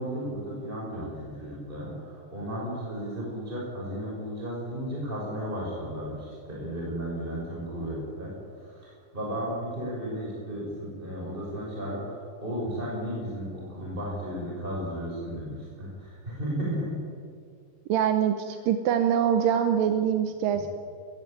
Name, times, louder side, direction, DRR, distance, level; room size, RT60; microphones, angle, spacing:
voice 1, 0.0-8.3 8.6-17.0, equal, 15° right, -4 dB, 6.1 m, -34 dB
voice 2, 17.9-20.7, right 9 dB, 75° right, 7 dB, 2.6 m, -24 dB
20.5 x 16.0 x 9.2 m, 2.1 s
omnidirectional pair, 4.1 m